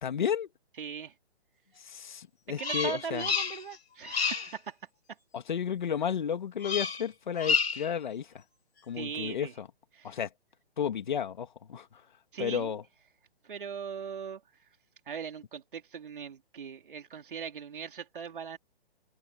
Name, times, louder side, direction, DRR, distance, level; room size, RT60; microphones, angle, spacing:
voice 1, 0.0-0.5 1.8-3.3 5.3-8.3 8.9-9.7 10.0-10.3 10.8-12.0 12.4-12.8, left 8 dB, 45° left, 2.2 m, -32 dB
voice 2, 0.8-1.1 2.6-4.8 8.9-9.5 9.9-10.2 12.3-12.7 13.4-14.4 15.1-18.6, right 7 dB, 55° right, 3.9 m, -39 dB
Bird vocalization bird call bird song, 2.6-3.8 4.0-4.6 6.6-7.1 7.4-7.9, left 5 dB, 75° left, 6.2 m, -30 dB
hypercardioid pair, 175°, 32 cm